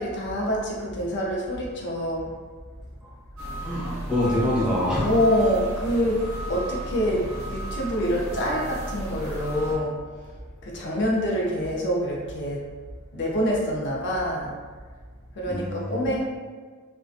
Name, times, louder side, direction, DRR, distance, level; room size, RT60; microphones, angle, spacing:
voice 1, 0.0-2.3 4.3-4.4 5.0-6.2 6.5-10.0 10.6-12.7 13.1-14.5 15.4-16.2, equal, 55° left, -3 dB, 0.5 m, -26 dB
sound 1, 3.4-9.8, right 1 dB, 85° right, 0.7 m, -34 dB
voice 2, 3.6-5.1 15.5-16.2, left 1 dB, 5° right, -8 dB, 0.6 m, -26 dB
2.4 x 2.2 x 2.5 m, 1.5 s
head